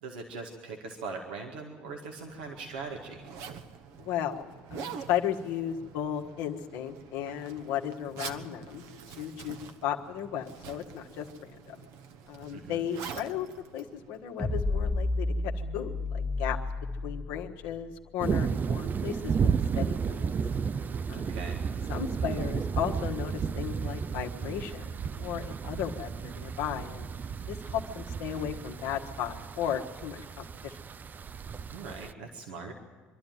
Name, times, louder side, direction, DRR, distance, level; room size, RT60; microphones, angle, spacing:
voice 1, 0.0-3.2 12.5-12.9 21.1-21.6 31.7-32.7, right 4 dB, 90° right, 1 dB, 2.0 m, -41 dB
Zipper (clothing), 2.0-14.7, right 6 dB, 70° right, 1.2 m, -46 dB
voice 2, 4.0-8.8 9.2-11.8 12.3-13.5 13.7-16.6 17.0-19.4 19.7-20.3 21.1-21.4 21.9-24.8 25.2-27.1 27.5-27.6 27.9-30.8, left 9 dB, 75° left, 2 dB, 1.4 m, -35 dB
sound 1, 14.4-17.8, left 2 dB, 20° left, 1.5 m, -31 dB
sound 2, 18.2-32.1, right 6 dB, 35° right, 0.5 m, -33 dB
24.5 x 12.0 x 9.2 m, 1.4 s
hypercardioid pair, 65°, 5 cm